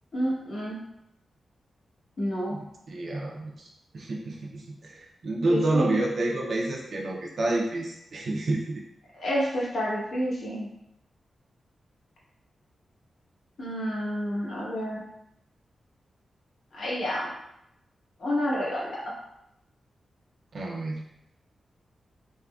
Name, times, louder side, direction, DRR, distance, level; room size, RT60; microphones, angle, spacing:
voice 1, 0.1-0.8 2.2-2.6 5.5-6.0 9.1-10.7 13.6-15.0 16.7-17.3 18.2-19.0, equal, 60° left, -6 dB, 1.0 m, -29 dB
voice 2, 2.5-3.7 3.9-8.8 20.5-21.1, right 2 dB, 60° right, -1 dB, 0.4 m, -29 dB
3.6 x 2.1 x 2.3 m, 0.81 s
wide cardioid pair, 120°, 0 cm